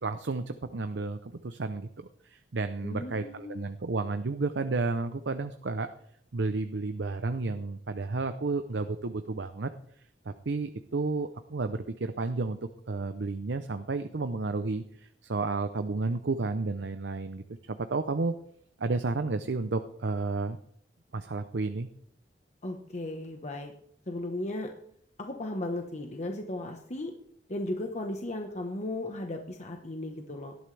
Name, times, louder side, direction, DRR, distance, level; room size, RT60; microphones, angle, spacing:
voice 1, 0.0-5.9 6.3-9.7 10.3-12.6 12.9-18.3 18.8-20.6 21.1-21.9, right 3 dB, 75° right, 9 dB, 0.7 m, -32 dB
voice 2, 2.8-3.6 22.6-23.7 24.1-24.7 25.2-27.1 27.5-30.6, left 1 dB, 40° left, 3 dB, 1.2 m, -36 dB
18.5 x 12.5 x 3.4 m, 0.66 s
head